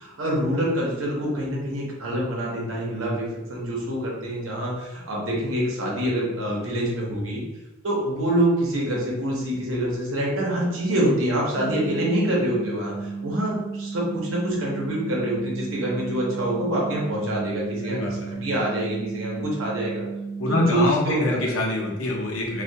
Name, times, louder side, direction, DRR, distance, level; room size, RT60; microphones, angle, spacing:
voice 1, 0.0-7.4 7.8-12.9 13.2-20.0 20.5-21.4, right 1 dB, 80° right, -3 dB, 0.8 m, -26 dB
sound 1, 11.5-20.7, right 4 dB, 10° left, 0.4 m, -34 dB
voice 2, 17.8-18.3 20.4-22.6, left 2 dB, 90° left, -1 dB, 0.6 m, -25 dB
2.3 x 2.2 x 2.6 m, 1.0 s
head